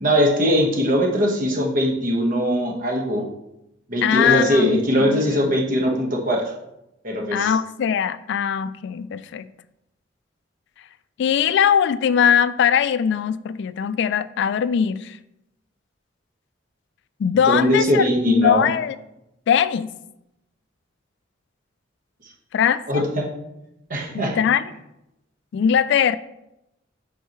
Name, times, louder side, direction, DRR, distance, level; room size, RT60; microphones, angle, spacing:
voice 1, 0.0-3.2 3.9-6.5 7.0-7.5 17.4-18.7 22.9-23.3 23.9-24.4, equal, 45° right, 0 dB, 1.4 m, -21 dB
voice 2, 4.0-5.4 7.3-9.5 11.2-15.2 17.2-19.0 19.5-19.9 22.5-23.0 24.1-24.6 25.5-26.2, left 8 dB, 65° left, 15 dB, 0.3 m, -21 dB
8.1 x 5.4 x 3.1 m, 0.88 s
head